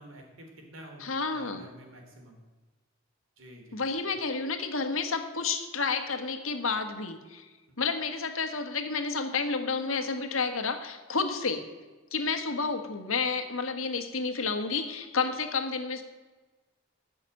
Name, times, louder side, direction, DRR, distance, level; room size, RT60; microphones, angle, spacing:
voice 1, 0.0-1.0 1.3-2.4 3.4-3.8, right 1 dB, 75° right, 2 dB, 3.4 m, -49 dB
voice 2, 1.0-1.7 3.7-7.5 7.8-11.6 12.1-16.0, left 4 dB, 90° left, 7 dB, 1.5 m, -30 dB
14.5 x 6.3 x 9.0 m, 1.2 s
head